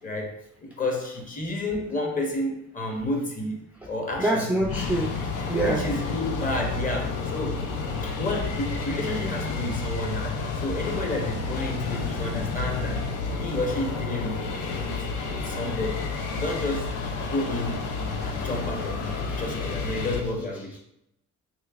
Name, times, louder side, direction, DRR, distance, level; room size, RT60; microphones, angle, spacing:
voice 1, 0.0-4.7 5.6-7.6 8.0-13.0 13.4-14.5 14.8-15.1 15.3-16.0 16.3-16.9 17.2-17.9 18.2-20.7, left 2 dB, 25° left, 1 dB, 0.8 m, -31 dB
voice 2, 4.2-5.1 5.5-5.8 18.3-18.4 19.3-19.4, right 1 dB, 5° right, -1 dB, 0.3 m, -25 dB
sound 1, 4.6-20.2, left 4 dB, 90° left, 0.5 m, -30 dB
3.3 x 3.0 x 2.4 m, 0.80 s
cardioid pair, 90°, 30 cm